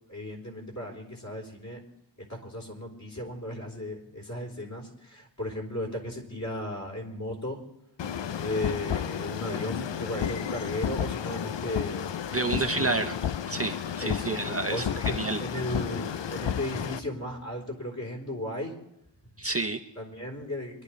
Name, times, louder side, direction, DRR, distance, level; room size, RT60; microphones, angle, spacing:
voice 1, 0.1-1.8 2.3-7.6 8.4-12.1 12.5-12.9 14.0-14.4 14.7-18.7 20.0-20.8, left 1 dB, 40° left, -1 dB, 4.0 m, -35 dB
sound 1, 8.0-17.0, left 9 dB, 80° left, 0.6 m, -32 dB
voice 2, 12.3-13.1 13.5-15.4 19.4-19.8, right 3 dB, 35° right, 5 dB, 0.8 m, -29 dB
24.5 x 11.5 x 3.3 m, 0.84 s
wide cardioid pair, 90°, 43 cm